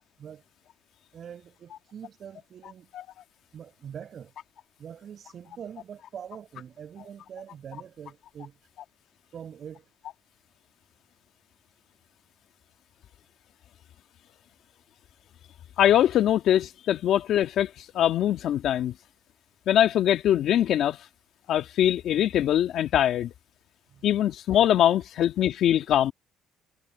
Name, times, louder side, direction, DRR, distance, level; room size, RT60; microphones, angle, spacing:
voice 1, 1.1-2.9 3.5-4.3 4.8-8.6 9.3-9.9 23.9-24.1, right 8 dB, 50° right, 5.6 m, -43 dB
voice 2, 15.8-18.9 19.7-21.0 21.5-23.3 24.0-26.1, left 11 dB, 60° left, 1.6 m, -22 dB
cardioid pair, 100°, 0 cm